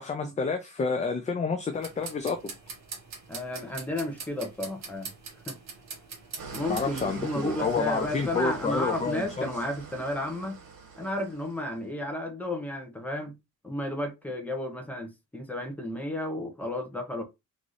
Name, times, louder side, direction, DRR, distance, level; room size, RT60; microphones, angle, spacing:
voice 1, 0.0-2.5 6.7-9.5, left 4 dB, 25° left, 0.5 m, -29 dB
sound 1, 1.7-7.2, right 5 dB, 55° right, 1.5 m, -43 dB
voice 2, 3.3-5.1 5.5-5.6 6.5-10.6 11.0-13.3 13.6-17.2, left 1 dB, 5° left, 1.2 m, -33 dB
Engine starting / Idling, 6.4-11.8, right 5 dB, 85° right, 1.6 m, -43 dB
4.0 x 3.6 x 3.2 m
wide cardioid pair, 170°, 32 cm